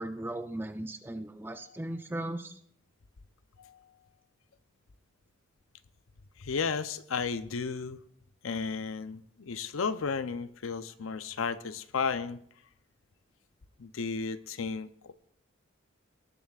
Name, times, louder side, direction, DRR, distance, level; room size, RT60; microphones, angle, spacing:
voice 1, 0.0-2.5, right 1 dB, 10° right, 8 dB, 0.5 m, -37 dB
voice 2, 6.4-8.0 8.4-12.4 13.8-15.1, left 5 dB, 85° left, 13 dB, 0.6 m, -34 dB
18.5 x 10.5 x 2.4 m, 0.66 s
head